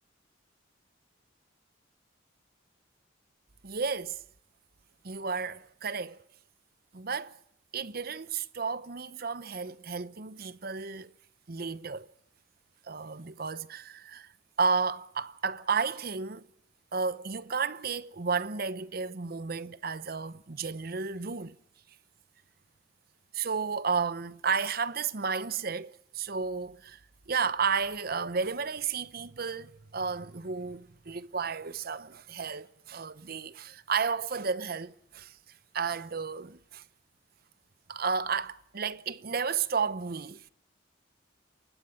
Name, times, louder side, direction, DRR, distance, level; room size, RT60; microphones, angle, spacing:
voice 1, 3.6-4.2 5.0-6.2 6.9-7.4 7.7-11.1 11.5-12.1 12.9-14.3 14.6-16.5 16.9-21.5 23.3-27.0 27.3-35.4 35.7-36.8 37.9-40.5, right 5 dB, 50° right, 0.8 m, -32 dB
28.5 x 12.0 x 10.0 m
head